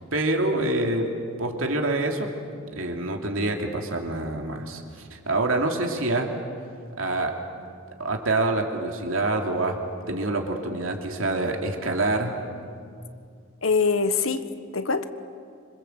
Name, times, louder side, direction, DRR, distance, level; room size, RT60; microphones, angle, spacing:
voice 1, 0.1-1.1 1.4-2.3 2.7-6.3 7.0-7.4 8.0-9.8 10.1-12.4, right 2 dB, 70° right, 3 dB, 2.9 m, -26 dB
voice 2, 13.6-15.1, left 4 dB, 75° left, 10 dB, 1.4 m, -24 dB
26.5 x 25.5 x 8.1 m, 2.3 s
head